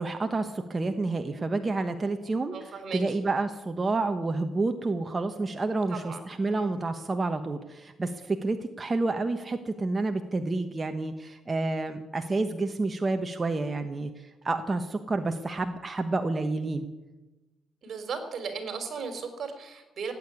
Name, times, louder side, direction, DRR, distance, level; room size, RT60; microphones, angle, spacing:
voice 1, 0.0-16.9, right 3 dB, 25° right, 6 dB, 1.1 m, -29 dB
voice 2, 2.5-3.2 5.9-6.2 6.5-6.7 17.8-20.1, right 5 dB, 55° right, 6 dB, 3.8 m, -36 dB
17.0 x 8.8 x 9.7 m, 1.1 s
cardioid pair, 90°, 0 cm